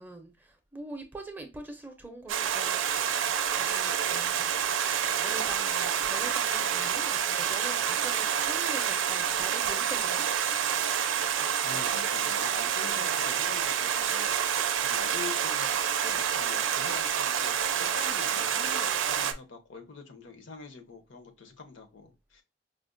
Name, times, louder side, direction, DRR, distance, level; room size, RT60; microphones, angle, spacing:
voice 1, 0.0-3.2 3.5-4.6 5.2-10.2 11.7-11.9, right 2 dB, 10° right, 0.4 m, -43 dB
Stream, 2.3-19.3, right 8 dB, 85° right, 0.4 m, -28 dB
voice 2, 11.6-22.4, left 5 dB, 80° left, 0.8 m, -45 dB
4.9 x 2.1 x 2.5 m
head